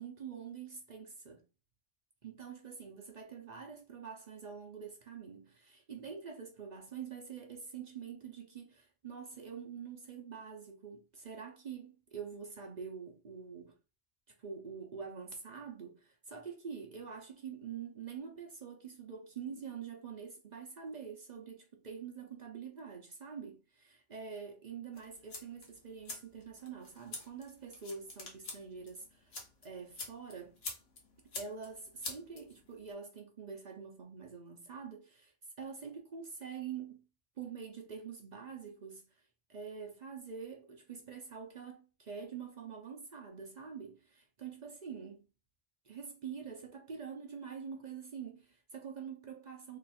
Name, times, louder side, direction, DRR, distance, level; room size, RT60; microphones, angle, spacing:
voice 1, 0.0-1.4 2.2-13.7 14.4-29.4 29.6-30.6 31.3-35.3 35.6-37.0 37.4-39.0 39.5-45.3 45.8-49.8, right 6 dB, 45° right, 0.6 m, -46 dB
sound 1, 24.9-32.9, left 3 dB, 60° left, 1.2 m, -48 dB
3.1 x 2.3 x 4.1 m
omnidirectional pair, 1.2 m